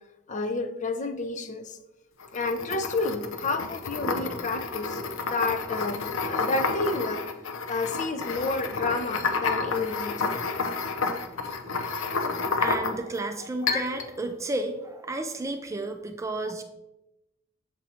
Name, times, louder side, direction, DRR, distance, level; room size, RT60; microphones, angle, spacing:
voice 1, 0.3-1.8 2.3-7.2 7.7-10.3 12.0-12.1 12.5-12.6 13.6-13.8, left 3 dB, 40° left, 8 dB, 0.5 m, -30 dB
sound 1, 2.2-13.2 13.7-14.1, left 4 dB, 80° left, 0.6 m, -30 dB
voice 2, 12.6-16.6, right 2 dB, 15° right, 6 dB, 0.4 m, -32 dB
7.5 x 4.0 x 4.2 m, 0.96 s
head